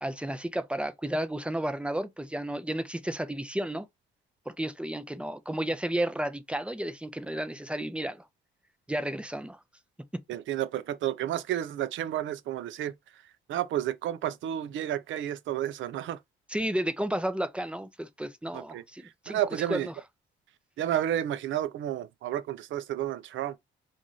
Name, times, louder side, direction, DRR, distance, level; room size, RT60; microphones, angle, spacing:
voice 1, 0.0-3.9 4.5-8.2 8.9-9.6 16.5-19.4 19.7-19.9, right 1 dB, 5° right, 0.5 m, -32 dB
voice 2, 10.3-12.9 13.5-16.2 18.5-18.8 19.3-19.9 20.8-23.6, right 11 dB, 75° right, 0.5 m, -31 dB
3.1 x 2.5 x 3.8 m
cardioid pair, 90°, 20 cm